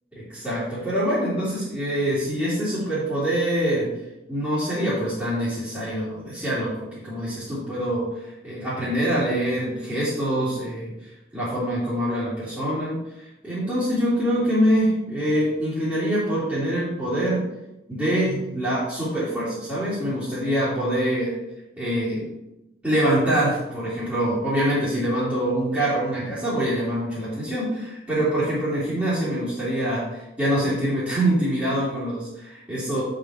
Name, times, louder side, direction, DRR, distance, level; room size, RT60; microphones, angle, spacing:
voice 1, 0.1-3.9 4.3-17.5 17.9-21.4 21.8-22.3 22.8-33.0, right 1 dB, 10° right, -13 dB, 2.8 m, -25 dB
8.0 x 5.1 x 4.3 m, 0.93 s
head